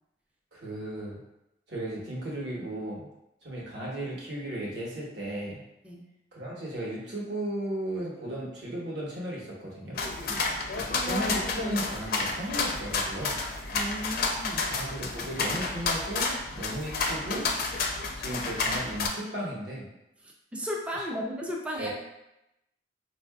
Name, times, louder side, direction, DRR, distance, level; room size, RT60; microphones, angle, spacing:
voice 1, 0.5-1.2 1.7-3.1 3.4-5.6 6.3-10.0 10.9-13.4 14.7-17.5 18.2-19.9 21.0-21.1 21.8-21.9, right 1 dB, 70° right, -5 dB, 1.1 m, -35 dB
sound 1, 9.9-19.1, left 3 dB, 55° left, 0.4 m, -30 dB
voice 2, 13.7-14.7 20.2-21.9, equal, 5° right, -2 dB, 0.3 m, -35 dB
4.4 x 2.5 x 2.3 m, 0.88 s
head